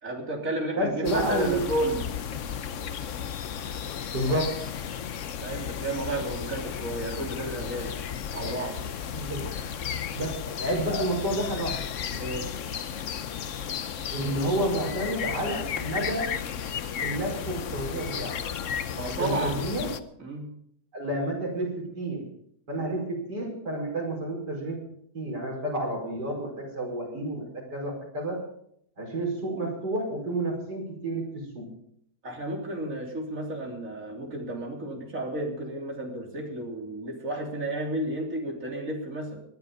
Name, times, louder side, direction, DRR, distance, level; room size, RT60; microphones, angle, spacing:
voice 1, 0.0-2.0 4.2-4.4 5.4-7.9 8.3-8.8 12.2-12.5 18.9-19.6 20.2-20.5 32.2-39.4, right 1 dB, 50° right, 1 dB, 3.6 m, -32 dB
voice 2, 0.8-1.7 4.1-4.7 9.1-9.5 10.1-11.8 14.1-16.4 17.0-18.4 19.1-19.9 20.9-22.3 22.7-24.8 25.1-28.4 29.0-31.7, right 1 dB, 85° right, 0 dB, 5.6 m, -30 dB
sound 1, 1.0-20.0, left 8 dB, 55° left, 1.0 m, -34 dB
19.0 x 12.0 x 5.2 m, 0.71 s
omnidirectional pair, 1.8 m